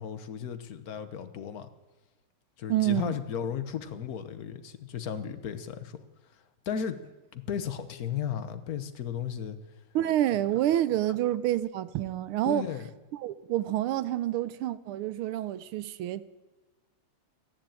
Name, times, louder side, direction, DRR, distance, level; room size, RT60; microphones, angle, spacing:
voice 1, 0.0-1.7 2.6-6.0 6.3-7.0 7.3-9.6 12.4-12.9, left 8 dB, 55° left, 1.2 m, -35 dB
voice 2, 2.7-3.1 9.9-12.6 13.1-16.2, right 13 dB, 80° right, 1.5 m, -28 dB
14.0 x 10.5 x 8.9 m
omnidirectional pair, 2.4 m